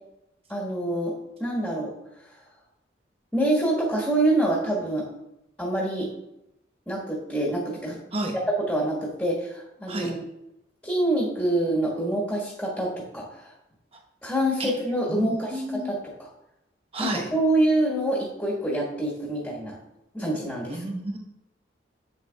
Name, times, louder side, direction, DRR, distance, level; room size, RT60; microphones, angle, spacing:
voice 1, 0.5-1.1 1.4-1.9 3.3-5.1 5.6-6.1 6.9-8.0 8.7-10.2 10.8-13.5 14.2-16.3 17.0-19.8 20.1-20.8, right 1 dB, 5° left, -7 dB, 1.5 m, -26 dB
voice 2, 15.1-15.9 16.9-17.2 20.7-21.2, right 1 dB, 30° right, 2 dB, 1.0 m, -30 dB
8.5 x 6.7 x 2.3 m, 0.88 s
head